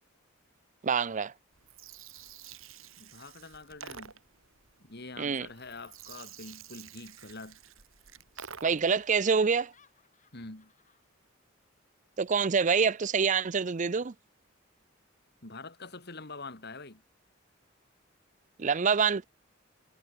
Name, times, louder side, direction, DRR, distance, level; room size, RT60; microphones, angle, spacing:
voice 1, 0.8-1.3 5.2-5.5 8.6-9.7 12.2-14.1 18.6-19.2, right 5 dB, 35° right, 0.5 m, -26 dB
Gurgling, 1.5-9.0, right 7 dB, 80° right, 3.2 m, -49 dB
voice 2, 3.0-4.1 4.8-7.6 10.3-10.7 15.4-17.0, left 3 dB, 55° left, 3.3 m, -45 dB
Laughter, 7.6-7.8 8.1-8.2 8.6-11.1, left 6 dB, 35° left, 6.7 m, -63 dB
head